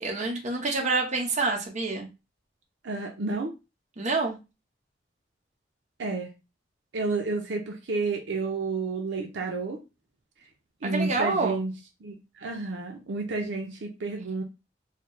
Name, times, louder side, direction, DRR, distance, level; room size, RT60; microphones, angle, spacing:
voice 1, 0.0-2.1 4.0-4.4 10.8-11.6, right 3 dB, 40° right, 1 dB, 1.0 m, -27 dB
voice 2, 2.8-3.5 6.0-6.3 6.9-9.8 10.8-11.7 12.0-14.4, right 3 dB, 75° right, 2 dB, 0.6 m, -31 dB
4.0 x 2.1 x 3.1 m, 0.27 s
head